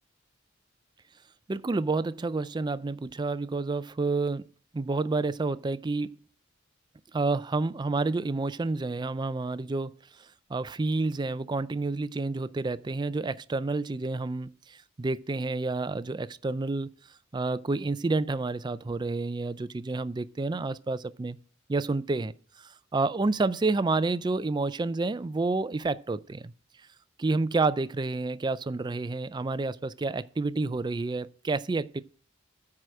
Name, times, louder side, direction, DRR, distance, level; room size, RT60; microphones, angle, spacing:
voice 1, 1.5-4.4 4.7-6.1 7.1-9.9 10.5-16.9 17.3-21.4 21.7-22.3 22.9-26.5 27.2-32.0, right 3 dB, 20° right, 0.4 m, -29 dB
9.1 x 4.9 x 7.6 m
head